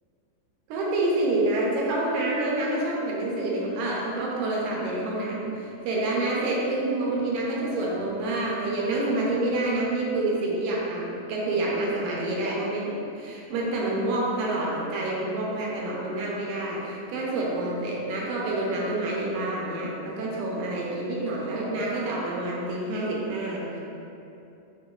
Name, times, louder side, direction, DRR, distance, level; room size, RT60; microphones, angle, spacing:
voice 1, 0.7-23.8, right 2 dB, 80° right, -4 dB, 1.8 m, -28 dB
5.8 x 2.0 x 2.3 m, 2.8 s
omnidirectional pair, 3.8 m